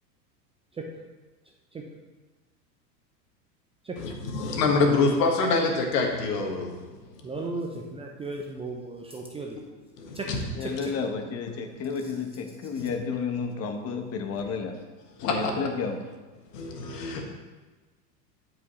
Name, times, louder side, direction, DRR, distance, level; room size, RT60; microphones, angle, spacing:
voice 1, 0.7-1.0 1.7-1.8 3.8-4.0 7.2-9.6 10.1-10.9, right 3 dB, 10° right, -1 dB, 0.5 m, -36 dB
voice 2, 4.0-6.8 10.0-10.4 15.2-15.5 16.5-17.2, left 3 dB, 65° left, 2 dB, 1.6 m, -25 dB
voice 3, 10.5-14.7 15.2-16.0, left 5 dB, 30° left, 4 dB, 1.0 m, -31 dB
12.5 x 5.0 x 3.1 m, 1.2 s
hypercardioid pair, 100°, 50 cm